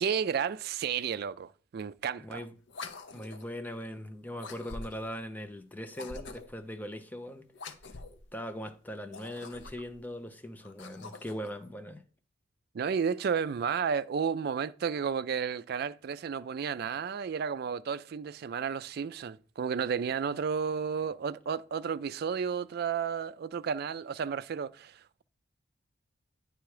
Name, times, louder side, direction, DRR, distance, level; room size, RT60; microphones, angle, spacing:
voice 1, 0.0-2.4 12.7-25.2, right 6 dB, 55° right, 0.3 m, -32 dB
voice 2, 2.2-2.5 3.1-7.5 8.3-12.0, equal, 10° left, 0.6 m, -40 dB
sound 1, 2.7-3.5 4.4-5.2 5.9-6.6 7.5-8.3 9.0-10.0 10.6-11.5, left 3 dB, 65° left, 0.6 m, -45 dB
9.2 x 3.4 x 4.9 m
head